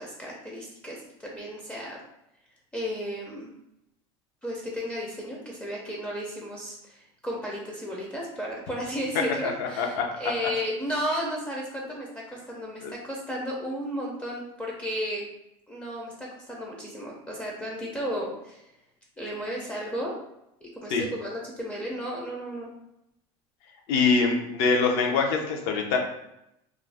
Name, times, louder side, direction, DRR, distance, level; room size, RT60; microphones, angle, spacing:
voice 1, 0.0-2.0 2.7-3.5 4.4-15.2 15.7-18.6 19.2-20.2 20.6-22.7, equal, 10° left, -3 dB, 0.4 m, -34 dB
voice 2, 9.6-10.0 12.8-12.9 20.9-21.0 23.9-26.0, left 4 dB, 75° left, 2 dB, 0.6 m, -24 dB
2.4 x 2.0 x 3.2 m, 0.84 s
cardioid pair, 145°, 13 cm